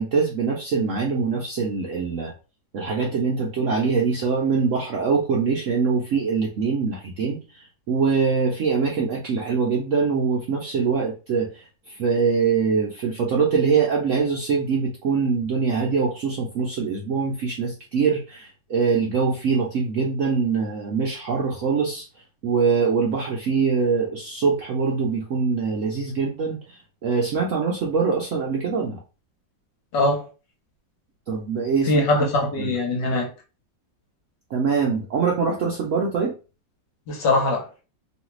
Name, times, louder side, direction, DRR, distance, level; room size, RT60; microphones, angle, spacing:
voice 1, 0.0-2.3 2.7-22.0 22.4-29.0 31.3-32.3 32.6-32.7 34.5-36.3, right 5 dB, 70° right, 0.7 m, -23 dB
voice 2, 29.9-30.3 31.9-33.3 37.1-37.7, left 2 dB, 75° left, 1.6 m, -22 dB
3.1 x 2.4 x 3.0 m
omnidirectional pair, 2.0 m